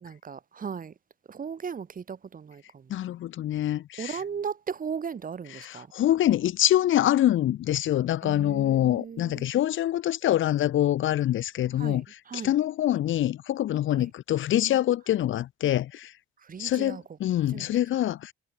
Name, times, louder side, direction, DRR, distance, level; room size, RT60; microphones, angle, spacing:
voice 1, 0.0-0.9 1.3-2.8 4.0-5.9 8.2-9.5 11.8-12.5 14.0-14.1 16.5-17.0 17.5-17.7, right 6 dB, 45° right, 4.3 m, -37 dB
voice 2, 2.9-4.2 5.5-16.1 16.6-18.3, left 12 dB, 75° left, 4.8 m, -25 dB
cardioid pair, 90°, 20 cm